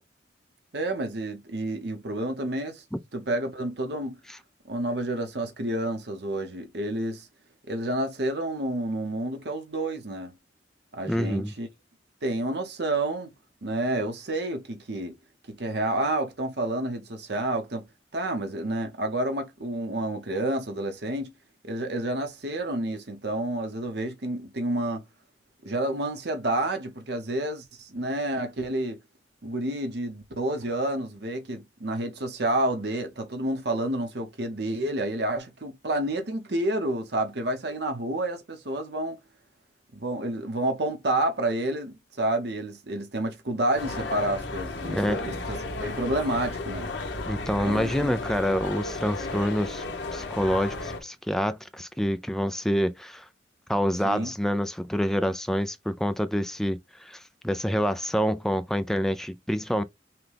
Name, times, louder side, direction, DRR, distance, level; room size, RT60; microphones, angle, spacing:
voice 1, 0.7-2.8 3.1-4.2 4.7-7.3 7.7-10.4 10.9-11.7 12.2-13.3 13.6-15.1 15.5-17.9 18.1-21.3 21.6-25.0 25.6-29.0 29.4-39.2 39.9-46.9 47.6-48.1 54.0-54.3, right 1 dB, 65° right, 0.9 m, -29 dB
voice 2, 11.1-11.5 44.9-45.4 47.3-49.8 50.1-53.2 53.7-59.8, equal, ahead, 0.3 m, -27 dB
sound 1, 43.7-51.0, left 2 dB, 80° left, 1.1 m, -34 dB
5.8 x 2.3 x 3.4 m
head